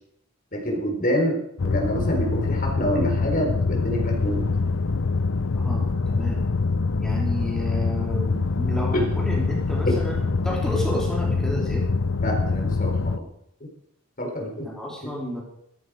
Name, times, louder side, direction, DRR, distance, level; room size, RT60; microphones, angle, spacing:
voice 1, 0.5-4.4 12.2-13.3 14.2-14.7, equal, 40° left, 1 dB, 4.2 m, -27 dB
sound 1, 1.6-13.2, left 4 dB, 65° left, 0.7 m, -24 dB
voice 2, 5.5-6.5 7.0-11.9 14.6-15.4, equal, 5° left, -4 dB, 3.5 m, -31 dB
17.0 x 13.5 x 4.9 m, 0.72 s
head